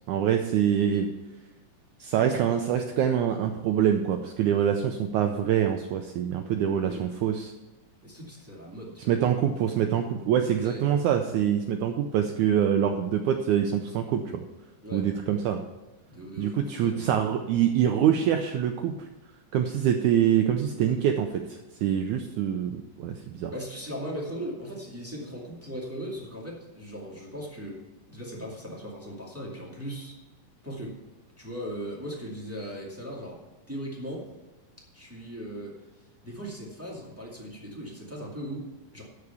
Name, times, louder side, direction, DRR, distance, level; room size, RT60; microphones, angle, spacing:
voice 1, 0.1-1.1 2.0-7.5 9.1-14.4 14.9-15.6 16.4-18.9 19.5-21.4 21.8-23.5, right 9 dB, 85° right, 5 dB, 1.7 m, -25 dB
voice 2, 8.0-9.2 10.6-10.9 14.8-15.5 16.1-17.1 23.5-27.8 28.1-30.2 30.6-31.0 31.4-33.4 33.7-34.3 34.9-39.0, equal, 5° right, -4 dB, 1.0 m, -38 dB
13.0 x 4.8 x 6.9 m, 1.1 s
omnidirectional pair, 4.2 m